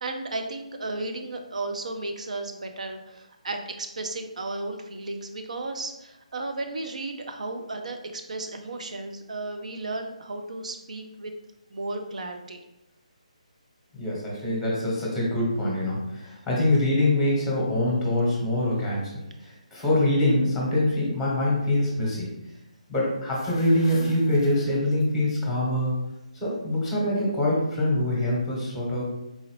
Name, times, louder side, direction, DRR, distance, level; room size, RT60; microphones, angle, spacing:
voice 1, 0.0-11.3 11.7-12.6, right 2 dB, 65° right, 5 dB, 0.5 m, -34 dB
voice 2, 13.9-19.1 19.4-22.3 22.9-25.9 26.3-29.0, left 1 dB, 5° left, -4 dB, 1.1 m, -24 dB
sound 1, 23.2-25.3, left 2 dB, 35° left, 0.5 m, -43 dB
4.0 x 2.4 x 3.1 m, 0.89 s
figure-of-eight pair, 150°, 4 cm